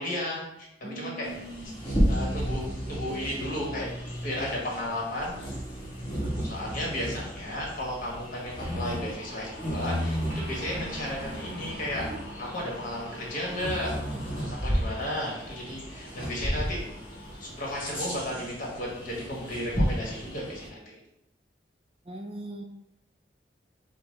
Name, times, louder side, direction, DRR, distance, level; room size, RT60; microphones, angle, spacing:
voice 1, 0.0-1.3 2.1-3.9 4.2-5.3 6.4-12.1 12.4-13.9 14.6-16.9 17.4-21.0, left 1 dB, 45° left, -3 dB, 1.4 m, -34 dB
voice 2, 0.8-1.8 22.0-22.6, right 2 dB, 30° right, 4 dB, 0.3 m, -40 dB
Bird vocalization bird call bird song, 1.2-20.7, equal, 30° left, 1.3 m, -33 dB
sound 1, 5.5-17.9 18.2-18.6, left 1 dB, 65° left, 0.7 m, -48 dB
sound 2, 10.3-17.1, right 1 dB, 10° right, 1.0 m, -47 dB
5.9 x 2.1 x 3.7 m, 0.85 s
head